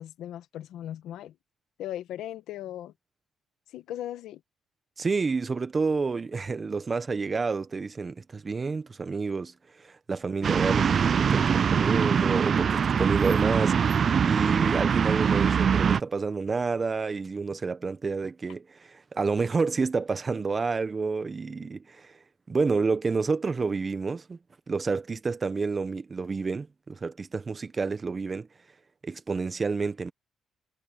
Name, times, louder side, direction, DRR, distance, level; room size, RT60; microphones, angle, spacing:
voice 1, 0.0-1.3 1.8-2.9 3.7-4.4, left 12 dB, 85° left, 1.5 m, -38 dB
voice 2, 5.0-22.2 22.5-24.4 24.7-28.5 29.0-30.1, right 4 dB, 35° right, 1.3 m, -29 dB
sound 1, 10.4-16.0, right 7 dB, 50° right, 0.5 m, -23 dB
cardioid pair, 90°, 0 cm